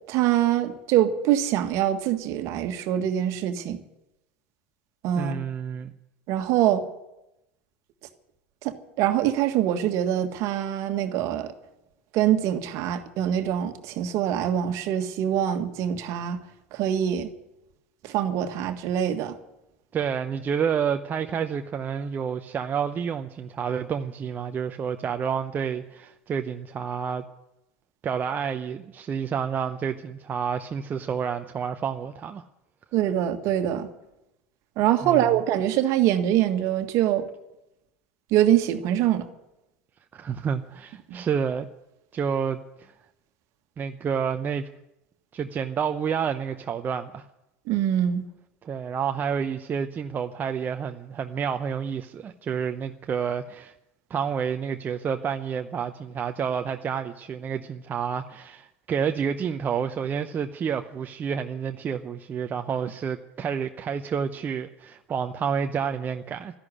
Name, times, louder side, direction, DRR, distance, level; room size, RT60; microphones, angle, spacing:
voice 1, 0.1-3.8 5.0-5.3 6.3-6.8 8.6-11.5 12.1-16.4 16.7-17.3 18.0-19.4 32.9-33.9 34.8-37.2 38.3-39.3 41.1-41.2 47.7-48.2, right 11 dB, 50° right, 8 dB, 1.6 m, -24 dB
voice 2, 5.1-5.9 19.9-27.2 28.0-32.5 35.0-35.2 40.1-41.7 42.1-42.9 43.8-44.7 45.3-47.2 48.6-53.7 54.1-66.6, right 7 dB, 30° right, 7 dB, 0.7 m, -29 dB
13.0 x 11.0 x 9.8 m, 0.92 s
figure-of-eight pair, 80°, 7 cm